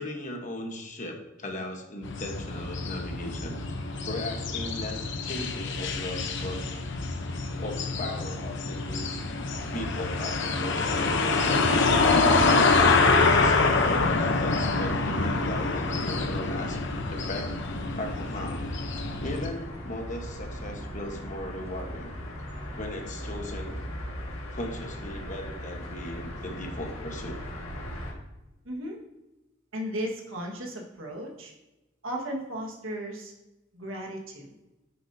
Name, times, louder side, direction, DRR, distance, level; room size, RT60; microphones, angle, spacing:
voice 1, 0.0-3.6 4.0-6.6 7.6-9.2 9.7-12.7 13.2-16.8 17.1-17.5 17.9-18.7 19.2-22.1 22.8-23.8 24.5-27.4, left 1 dB, 40° left, 2 dB, 1.2 m, -37 dB
sound 1, 2.0-19.5, left 3 dB, 60° left, 0.8 m, -26 dB
sound 2, 12.7-28.1, equal, 85° left, 1.8 m, -39 dB
voice 2, 28.6-29.0 29.7-31.5 32.0-33.3 33.7-34.5, equal, 75° right, -1 dB, 1.6 m, -35 dB
9.6 x 7.4 x 2.8 m, 0.99 s
head